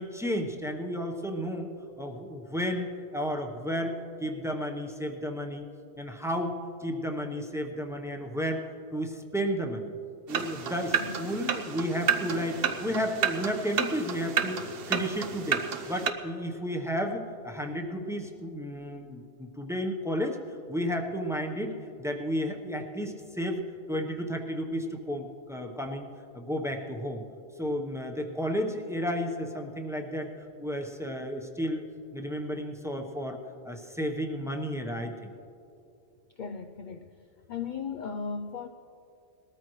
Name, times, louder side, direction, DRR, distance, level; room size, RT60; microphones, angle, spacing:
voice 1, 0.0-1.7 2.0-3.9 4.2-5.6 6.0-6.5 6.8-8.6 8.9-9.9 10.3-20.4 20.7-21.7 22.0-23.6 23.9-26.1 26.3-27.2 27.6-30.3 30.6-33.4 33.6-35.3, equal, 5° right, 2 dB, 0.8 m, -32 dB
sound 1, 10.3-16.1, right 7 dB, 60° right, 0.9 m, -31 dB
voice 2, 36.4-37.1 37.5-38.7, left 5 dB, 55° left, 7 dB, 0.6 m, -36 dB
20.5 x 13.5 x 3.1 m, 2.6 s
omnidirectional pair, 1.1 m